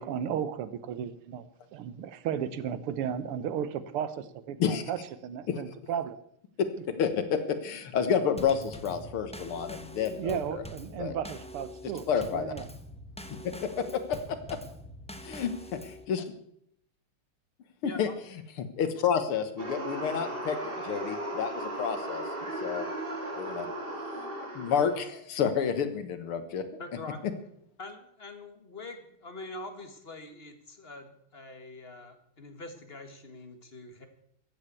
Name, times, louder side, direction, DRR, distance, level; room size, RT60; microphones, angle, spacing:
voice 1, 0.0-1.5 1.7-6.2 10.2-12.7, right 8 dB, 85° right, 14 dB, 1.9 m, -34 dB
voice 2, 7.0-10.6 11.0-11.2 12.1-12.5 13.8-14.2 14.5-14.6 15.3-15.5 16.1-16.2 17.8-18.1 18.8-20.6 20.8-22.2 22.6-22.9 23.3-23.7 24.5-26.6, left 7 dB, 80° left, 10 dB, 2.2 m, -29 dB
Drum kit / Snare drum / Bass drum, 8.4-16.0, left 1 dB, 10° left, 0.4 m, -44 dB
voice 3, 17.8-18.1 26.8-27.2 27.8-34.1, left 2 dB, 30° left, 7 dB, 1.7 m, -44 dB
sound 1, 19.6-25.1, right 1 dB, 25° right, 2.2 m, -36 dB
14.0 x 8.9 x 8.2 m, 0.73 s
omnidirectional pair, 2.4 m